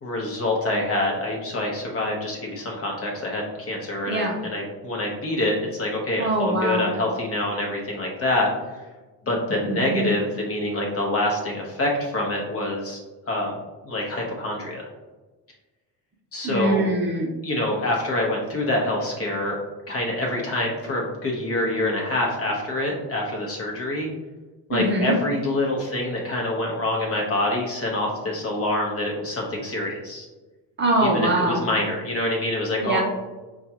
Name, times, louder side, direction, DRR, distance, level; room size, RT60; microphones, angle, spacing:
voice 1, 0.0-8.8 9.3-13.0 13.3-13.5 13.8-14.9 16.3-16.8 17.4-19.6 19.9-24.1 24.7-30.3 31.0-33.0, left 1 dB, 35° left, -1 dB, 0.9 m, -26 dB
voice 2, 6.2-6.9 9.7-10.1 16.4-17.3 24.7-25.2 30.8-31.6 32.8-33.0, right 2 dB, 30° right, -1 dB, 0.6 m, -23 dB
5.2 x 2.4 x 2.8 m, 1.2 s
cardioid pair, 135°, 39 cm